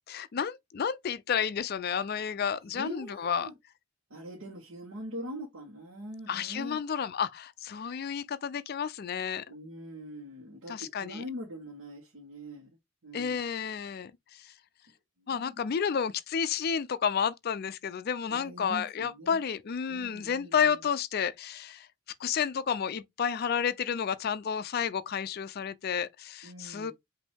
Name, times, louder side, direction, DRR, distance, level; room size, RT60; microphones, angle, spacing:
voice 1, 0.0-3.5 6.3-9.4 10.7-11.2 13.1-14.5 15.3-21.9 22.2-26.9, left 7 dB, 45° left, 0.3 m, -31 dB
voice 2, 2.7-3.5 4.1-6.8 9.5-12.7 13.0-13.4 15.2-15.5 18.3-19.4 19.9-20.7 26.4-26.9, equal, 65° right, 1.2 m, -43 dB
5.2 x 2.7 x 3.4 m
head